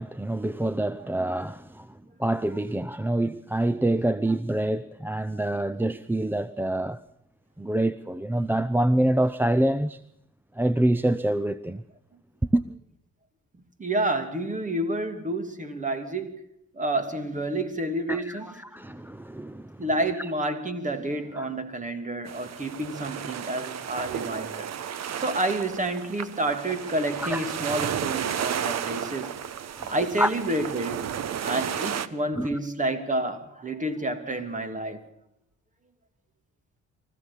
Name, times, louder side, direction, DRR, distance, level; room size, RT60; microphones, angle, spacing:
voice 1, 0.0-7.0 7.6-10.0 10.5-11.8 12.5-12.6 18.1-19.8 20.2-20.3 21.3-21.5 27.2-27.5 29.7-30.3 31.4-31.5 32.4-32.6, right 1 dB, 5° right, 0.7 m, -26 dB
voice 2, 13.8-16.4 16.7-18.5 19.8-24.7 25.2-29.3 29.9-31.0 31.4-35.0, right 1 dB, 25° right, 3.0 m, -29 dB
sound 1, 22.3-32.1, right 9 dB, 60° right, 1.2 m, -33 dB
24.0 x 15.0 x 7.2 m
cardioid pair, 90°, 30 cm